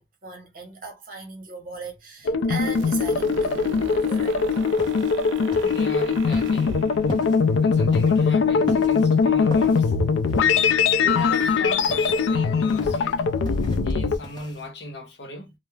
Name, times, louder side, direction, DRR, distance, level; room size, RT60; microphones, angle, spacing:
voice 1, 0.0-4.6 7.5-7.6, right 4 dB, 45° right, 0.8 m, -38 dB
Mini Sequence FM, 2.3-14.2, left 5 dB, 90° left, 0.3 m, -21 dB
sound 1, 2.6-8.3, right 6 dB, 85° right, 0.3 m, -39 dB
sound 2, 4.5-14.7, equal, 25° left, 0.6 m, -40 dB
voice 2, 5.5-6.8 7.6-9.9 11.0-13.2 13.8-15.5, left 1 dB, 65° left, 0.8 m, -36 dB
2.3 x 2.0 x 3.1 m
head